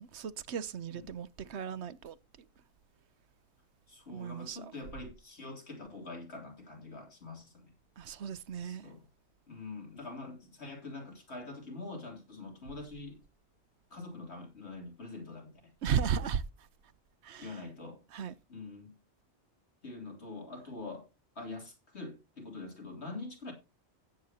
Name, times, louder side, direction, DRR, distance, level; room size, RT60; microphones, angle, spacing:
voice 1, 0.0-2.2 4.1-4.7 8.0-8.9 15.8-16.7 17.2-17.6 18.1-18.4, right 7 dB, 75° right, 1.0 m, -35 dB
voice 2, 3.9-7.7 8.6-9.1 9.5-13.2 13.9-15.7 17.4-18.0 18.5-19.0 19.8-21.1 21.3-23.5, left 3 dB, 70° left, 3.3 m, -45 dB
16.0 x 8.0 x 2.8 m
omnidirectional pair, 1.2 m